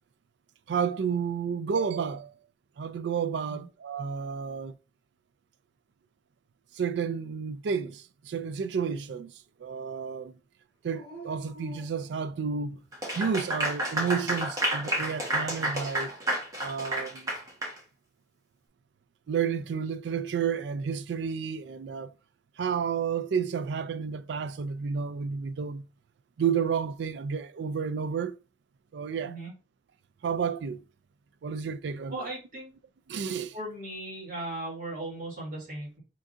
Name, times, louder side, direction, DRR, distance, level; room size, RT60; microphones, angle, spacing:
voice 1, 0.7-2.3 2.8-4.8 6.7-9.3 9.6-10.3 10.8-12.8 13.2-16.1 16.6-17.4 19.3-22.1 22.6-25.9 26.4-28.4 28.9-29.3 30.2-30.8 31.4-32.3 33.1-33.6, right 6 dB, 70° right, 0.3 m, -31 dB
Dog, 10.9-12.8 13.4-14.2 16.5-17.3, right 1 dB, 25° left, 2.2 m, -49 dB
Clapping / Applause, 12.9-17.8, right 1 dB, 20° right, 1.3 m, -30 dB
voice 2, 32.1-32.7 33.5-36.0, right 1 dB, 45° right, 2.4 m, -37 dB
4.5 x 3.6 x 2.6 m
head